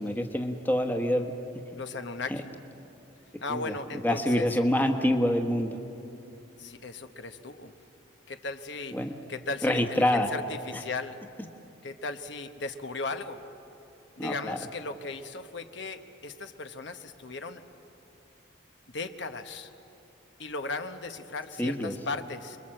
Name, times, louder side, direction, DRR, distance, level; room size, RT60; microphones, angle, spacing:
voice 1, 0.0-1.3 2.3-2.4 3.5-3.8 4.0-5.8 8.9-9.1 9.6-10.3 14.2-14.6 21.6-21.9, left 1 dB, 10° left, 4 dB, 1.2 m, -26 dB
voice 2, 1.8-2.5 3.4-4.5 6.6-7.7 8.3-9.0 9.3-11.2 11.8-13.4 14.2-17.6 18.9-19.7 20.4-22.6, left 3 dB, 65° left, 7 dB, 1.0 m, -37 dB
29.0 x 22.0 x 7.7 m, 2.8 s
head